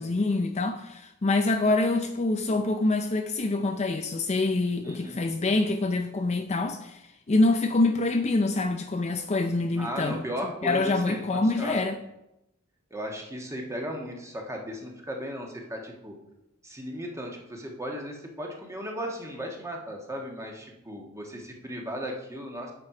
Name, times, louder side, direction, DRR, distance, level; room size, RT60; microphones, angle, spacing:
voice 1, 0.0-7.0 7.3-10.2 10.6-12.0, left 2 dB, 30° left, 6 dB, 0.5 m, -25 dB
voice 2, 4.8-5.2 9.8-11.9 12.9-16.1 16.6-22.7, equal, 15° right, 1 dB, 1.4 m, -36 dB
8.7 x 6.0 x 4.9 m, 0.85 s
head